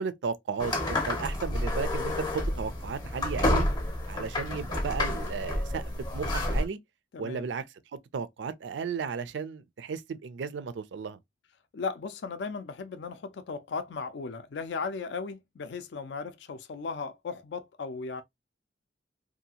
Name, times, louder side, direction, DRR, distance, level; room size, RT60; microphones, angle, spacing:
voice 1, 0.0-3.7 4.1-5.9 6.1-6.8 7.2-7.6 7.9-11.2, right 5 dB, 75° right, 0.4 m, -34 dB
sound 1, 0.6-6.6, left 1 dB, 25° left, 0.6 m, -29 dB
voice 2, 7.1-7.5 11.7-18.2, left 4 dB, 65° left, 0.4 m, -36 dB
2.7 x 2.3 x 2.7 m
head